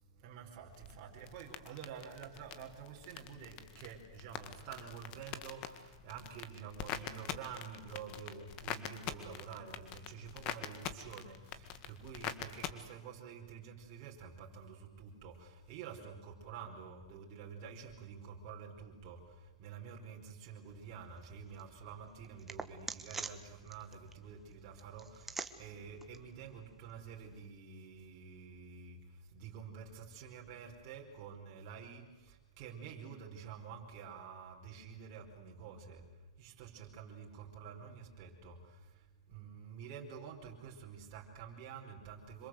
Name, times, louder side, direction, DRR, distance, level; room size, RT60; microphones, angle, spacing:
voice 1, 0.2-5.8 6.0-11.4 11.9-19.2 19.6-25.2 25.6-29.0 29.3-32.0 32.6-36.0 36.4-38.6 39.3-42.5, right 7 dB, 35° right, -1 dB, 5.1 m, -49 dB
sound 1, 0.7-12.7, left 9 dB, 30° left, 1.8 m, -45 dB
sound 2, 20.7-27.5, right 4 dB, 10° right, 1.3 m, -49 dB
27.0 x 25.5 x 8.1 m, 1.2 s
hypercardioid pair, 160°, 3 cm